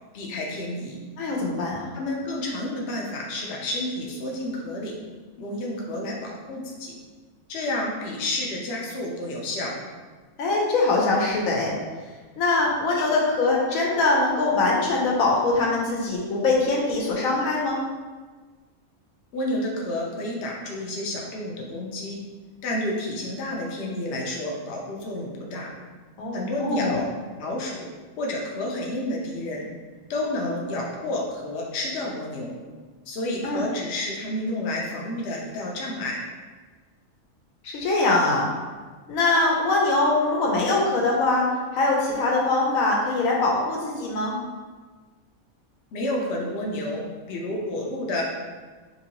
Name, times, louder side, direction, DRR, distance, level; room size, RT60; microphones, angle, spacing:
voice 1, 0.1-1.0 1.9-4.9 5.4-6.9 7.5-9.7 19.3-22.2 22.6-25.7 26.3-27.1 27.4-27.8 28.2-29.7 30.1-32.5 33.1-36.2 45.9-47.0 47.3-48.2, left 1 dB, 60° left, -2 dB, 0.7 m, -30 dB
voice 2, 1.2-1.9 10.4-11.7 12.4-17.8 26.2-27.0 33.4-33.6 37.6-38.5 39.1-41.5 41.7-44.4, left 2 dB, 75° left, -2 dB, 1.0 m, -22 dB
3.0 x 2.6 x 2.8 m, 1.4 s
omnidirectional pair, 1.5 m